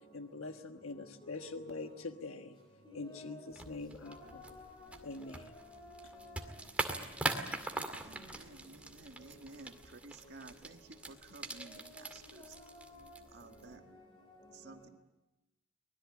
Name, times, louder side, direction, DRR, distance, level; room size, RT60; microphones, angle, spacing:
voice 1, 0.1-2.6 2.9-4.4 5.0-5.4, left 3 dB, 85° left, 6 dB, 1.3 m, -44 dB
voice 2, 1.2-1.9 2.8-6.6 6.9-8.5 11.5-14.9, left 1 dB, 25° left, 2 dB, 3.6 m, -54 dB
sound 1, 3.5-13.8, right 2 dB, 5° right, 2.2 m, -42 dB
voice 3, 8.0-12.6 13.3-13.8 14.5-14.9, right 3 dB, 55° right, 6 dB, 1.7 m, -53 dB
24.5 x 20.5 x 8.6 m, 0.96 s
head